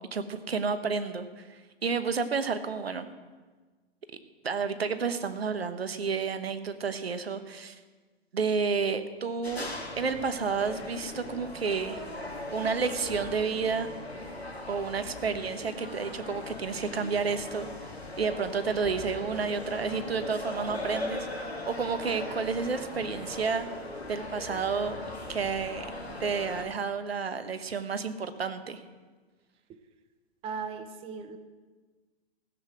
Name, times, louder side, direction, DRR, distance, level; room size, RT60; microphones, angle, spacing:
voice 1, 0.1-3.1 4.4-7.8 8.3-9.7 10.0-12.0 12.5-13.9 14.7-17.7 18.2-23.7 24.1-25.0 25.3-25.9 26.2-28.8, right 5 dB, 75° right, 10 dB, 1.2 m, -31 dB
sound 1, 9.4-26.7, left 2 dB, 90° left, 2.1 m, -39 dB
voice 2, 30.4-31.4, right 5 dB, 20° right, 10 dB, 0.7 m, -37 dB
16.0 x 7.8 x 7.8 m, 1.4 s
figure-of-eight pair, 115°, 31 cm